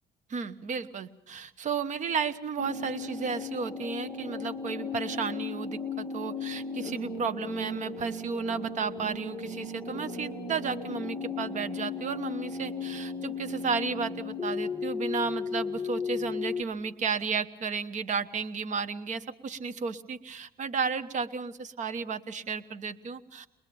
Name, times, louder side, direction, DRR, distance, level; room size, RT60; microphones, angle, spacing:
voice 1, 0.3-23.5, right 5 dB, 45° right, 12 dB, 1.2 m, -33 dB
sound 1, 2.6-16.6, left 4 dB, 5° left, 1.6 m, -36 dB
22.0 x 21.0 x 7.0 m, 0.83 s
cardioid pair, 110°, 17 cm